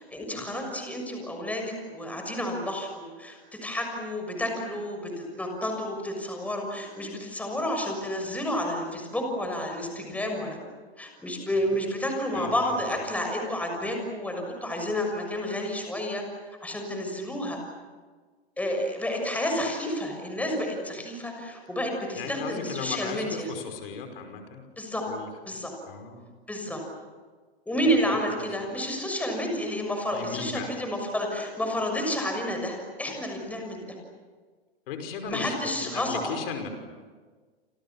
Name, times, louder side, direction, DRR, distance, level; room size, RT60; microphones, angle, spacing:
voice 1, 0.0-10.6 11.0-16.2 16.6-17.6 18.6-23.5 24.8-25.0 25.5-25.7 26.5-26.8 27.7-33.8 35.3-36.2, equal, 5° left, 3 dB, 6.5 m, -30 dB
voice 2, 12.3-13.0 22.1-24.6 25.1-25.3 25.9-26.3 27.8-28.2 28.6-28.7 30.1-30.8 34.9-36.7, left 6 dB, 60° left, 6 dB, 5.6 m, -37 dB
29.0 x 27.5 x 7.3 m, 1.5 s
hypercardioid pair, 140°, 32 cm